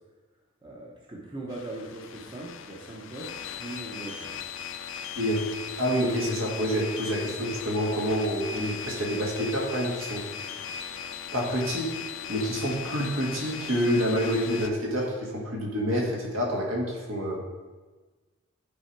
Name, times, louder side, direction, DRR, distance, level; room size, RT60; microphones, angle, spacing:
voice 1, 0.6-4.4, right 2 dB, 20° right, -3 dB, 0.9 m, -40 dB
sound 1, 1.5-14.7, left 7 dB, 65° left, 0.5 m, -38 dB
voice 2, 5.2-5.5 5.8-10.2 11.3-12.0 12.3-17.4, equal, 70° right, -2 dB, 1.8 m, -27 dB
9.5 x 4.2 x 4.6 m, 1.3 s
head